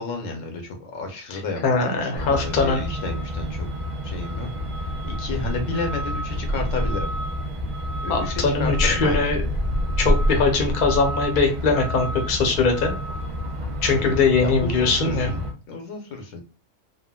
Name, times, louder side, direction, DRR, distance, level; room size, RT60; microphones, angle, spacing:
voice 1, 0.0-3.7 4.0-4.5 5.0-7.1 8.0-9.3 13.9-16.4, left 3 dB, 85° left, 4 dB, 1.1 m, -32 dB
voice 2, 1.6-2.8 8.1-9.4 10.0-12.9 13.8-15.3, left 4 dB, 50° left, 3 dB, 0.7 m, -21 dB
Truck, 2.2-15.5, equal, 55° right, 0.3 m, -28 dB
3.5 x 2.1 x 2.3 m, 0.34 s
omnidirectional pair, 1.3 m